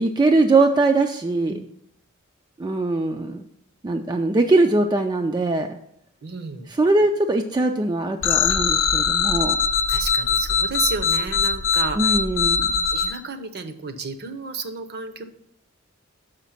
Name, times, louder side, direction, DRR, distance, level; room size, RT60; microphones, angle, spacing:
voice 1, 0.0-1.6 2.6-3.5 3.8-5.8 6.8-9.6 12.0-12.9, right 2 dB, 20° right, 4 dB, 0.3 m, -21 dB
voice 2, 6.2-6.7 9.9-12.1 12.9-15.2, right 4 dB, 50° right, 8 dB, 0.7 m, -32 dB
sound 1, 8.2-13.1, left 6 dB, 65° left, 0.6 m, -21 dB
6.3 x 5.1 x 5.7 m, 0.75 s
head